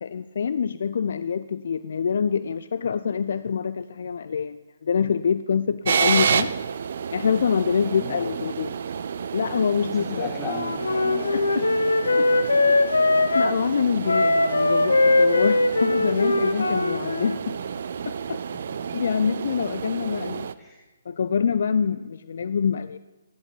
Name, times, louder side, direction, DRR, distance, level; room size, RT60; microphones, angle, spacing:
voice 1, 0.0-6.5 7.1-8.7 9.3-10.3 11.3-11.7 12.2-12.3 13.3-17.6 18.1-18.4 18.9-20.5 21.1-23.0, left 6 dB, 55° left, 14 dB, 0.4 m, -25 dB
sound 1, 5.8-20.5, right 7 dB, 50° right, 0.5 m, -30 dB
voice 2, 7.8-8.3 9.8-11.7 20.6-20.8, left 2 dB, 10° left, -7 dB, 5.4 m, -37 dB
Wind instrument woodwind instrument, 10.4-13.6 14.0-17.4, left 2 dB, 70° left, 1.0 m, -21 dB
16.0 x 11.0 x 4.0 m, 1.1 s
figure-of-eight pair, 135°, 0 cm